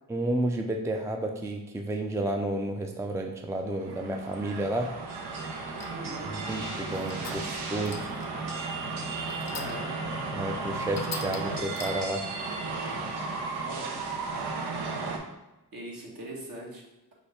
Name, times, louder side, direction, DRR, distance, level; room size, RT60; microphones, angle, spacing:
voice 1, 0.1-4.9 6.3-8.1 10.3-12.2, right 1 dB, 5° right, 3 dB, 0.5 m, -31 dB
sound 1, 3.7-15.2, right 3 dB, 75° right, 0.8 m, -34 dB
sound 2, 5.8-6.1 6.8-7.6 7.8-8.4 9.3-10.0 10.4-10.5 10.9-12.3, left 5 dB, 40° left, 0.6 m, -42 dB
voice 2, 5.9-6.3 9.4-9.9 13.6-14.1 15.7-16.8, right 1 dB, 55° right, -2 dB, 1.5 m, -41 dB
5.0 x 2.3 x 4.2 m, 1.0 s
cardioid pair, 40°, 40 cm